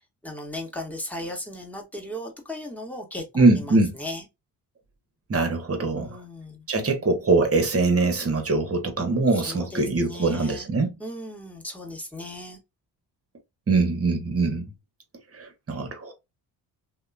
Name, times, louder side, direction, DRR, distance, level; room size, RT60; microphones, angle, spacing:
voice 1, 0.0-3.2 3.5-4.2 6.0-6.7 9.4-10.7 11.0-12.6, left 1 dB, 5° left, 1.2 m, -37 dB
voice 2, 3.3-3.9 5.3-6.2 6.7-10.9 13.7-14.6 15.3-16.1, right 3 dB, 30° right, 1.0 m, -22 dB
2.8 x 2.2 x 2.4 m
supercardioid pair, 55°, 45 cm